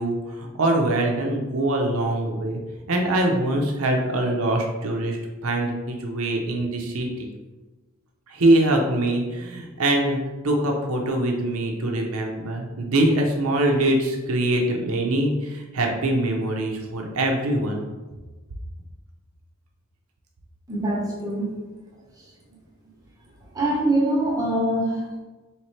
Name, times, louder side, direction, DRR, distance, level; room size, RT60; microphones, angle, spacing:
voice 1, 0.0-2.6 2.9-7.3 8.3-10.2 10.4-17.8, right 1 dB, 85° right, 1 dB, 0.7 m, -23 dB
voice 2, 20.7-21.5 23.5-25.2, right 1 dB, 15° right, -4 dB, 1.0 m, -23 dB
4.4 x 3.2 x 3.2 m, 1.2 s
head